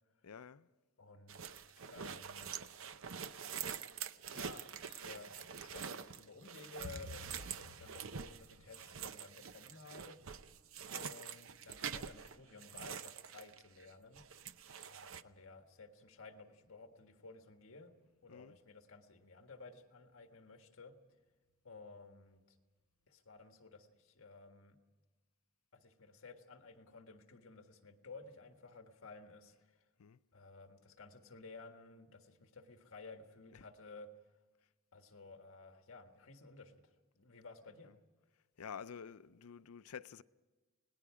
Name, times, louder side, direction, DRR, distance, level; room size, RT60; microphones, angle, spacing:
voice 1, 0.2-0.7 1.8-2.1 18.3-18.6 30.0-30.2 33.5-33.7 37.8-38.0 38.6-40.2, left 7 dB, 85° left, 0.5 m, -50 dB
voice 2, 1.0-1.4 1.9-2.5 4.3-10.2 10.9-14.2 14.9-17.9 18.2-21.0 21.6-22.6 23.1-24.8 25.7-29.9 30.3-34.1 34.9-37.9, left 3 dB, 65° left, 1.7 m, -55 dB
sound 1, 1.3-13.9 14.2-15.2, right 7 dB, 65° right, 0.7 m, -46 dB
sound 2, 6.8-17.6 17.8-18.5 18.8-19.1 19.3-19.7 20.0-20.1 20.6-21.1 21.5-21.6 22.1-22.2, left 1 dB, 90° right, 2.8 m, -59 dB
29.0 x 19.0 x 4.9 m
head